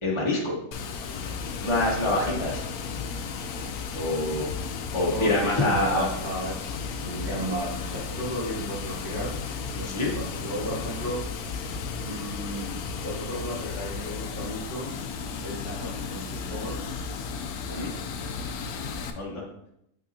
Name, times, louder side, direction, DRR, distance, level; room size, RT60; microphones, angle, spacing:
voice 1, 0.0-0.6 1.6-2.5 3.9-4.5 4.9-6.1 9.8-10.1 17.7-17.9 19.2-19.4, left 2 dB, 20° left, -4 dB, 1.1 m, -26 dB
Water, 0.7-19.1, left 5 dB, 90° left, 1.1 m, -34 dB
voice 2, 2.0-2.6 4.8-9.3 9.7-11.3 12.0-14.9 15.4-16.8 17.7-18.0, right 1 dB, 50° right, -7 dB, 1.9 m, -34 dB
6.8 x 6.1 x 2.8 m, 0.77 s
omnidirectional pair, 1.5 m